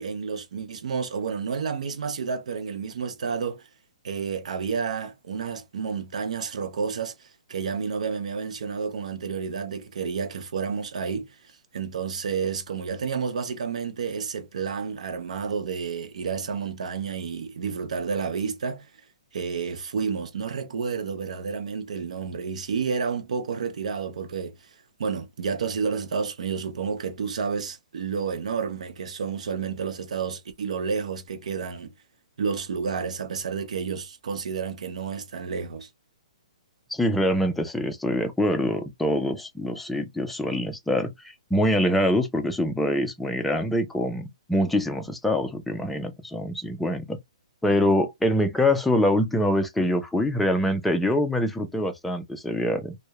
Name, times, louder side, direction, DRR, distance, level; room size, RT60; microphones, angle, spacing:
voice 1, 0.0-3.6 4.0-11.3 11.7-18.9 19.3-24.6 25.0-31.9 32.4-35.9, right 6 dB, 75° right, 0.5 m, -30 dB
voice 2, 36.9-47.2 47.6-53.0, left 1 dB, 5° left, 0.4 m, -24 dB
2.7 x 2.0 x 2.3 m
hypercardioid pair, 155°, 4 cm